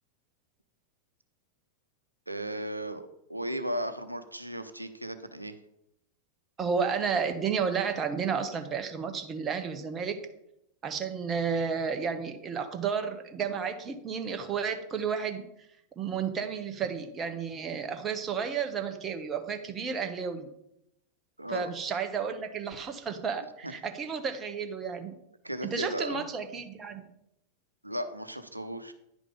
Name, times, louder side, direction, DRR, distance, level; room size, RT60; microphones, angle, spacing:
voice 1, 2.3-5.5 21.4-21.7 23.6-23.7 25.4-26.2 27.8-28.9, right 1 dB, 85° right, 9 dB, 0.7 m, -35 dB
voice 2, 6.6-10.2 10.8-15.4 16.0-20.5 21.5-25.1 25.6-27.0, right 6 dB, 25° right, 7 dB, 1.0 m, -32 dB
10.0 x 5.1 x 5.1 m, 0.80 s
figure-of-eight pair, 90°, 0 cm